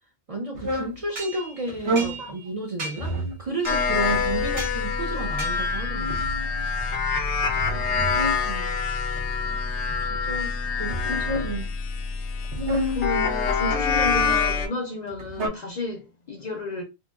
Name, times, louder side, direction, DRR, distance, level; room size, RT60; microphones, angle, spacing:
voice 1, 0.3-3.1 3.4-6.3 8.4-8.8 9.4-9.6 10.0-11.7, right 1 dB, 45° right, 0.5 m, -32 dB
sound 1, 0.5-1.0 1.7-2.2 2.9-3.4 4.1-4.8 5.6-6.9 7.4-8.4 9.2-10.1 10.8-11.5 12.4-13.1 13.8-14.4 15.1-15.5, right 1 dB, 80° right, 1.1 m, -30 dB
sound 2, 1.2-2.5 2.8-3.2 3.7-4.1 4.6-4.8 5.4-5.9, right 3 dB, 65° right, 1.3 m, -37 dB
sound 3, 3.7-14.7, left 5 dB, 85° left, 0.9 m, -26 dB
voice 2, 7.7-8.2 11.1-11.2 12.9-16.8, left 2 dB, 50° left, 0.5 m, -32 dB
2.9 x 2.8 x 2.2 m
omnidirectional pair, 1.1 m